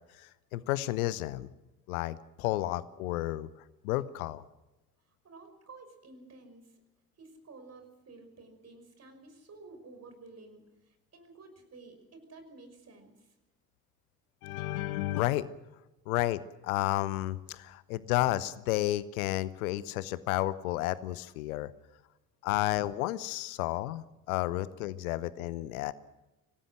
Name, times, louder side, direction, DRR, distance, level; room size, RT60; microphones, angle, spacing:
voice 1, 0.1-1.5 1.9-3.5 3.8-4.4 14.4-15.5 16.1-21.7 22.4-25.9, left 16 dB, 60° left, 18 dB, 0.9 m, -32 dB
voice 2, 5.0-6.8 7.2-13.4, right 3 dB, 30° right, 7 dB, 5.9 m, -52 dB
25.5 x 18.0 x 6.4 m, 1.0 s
figure-of-eight pair, 55°, 47 cm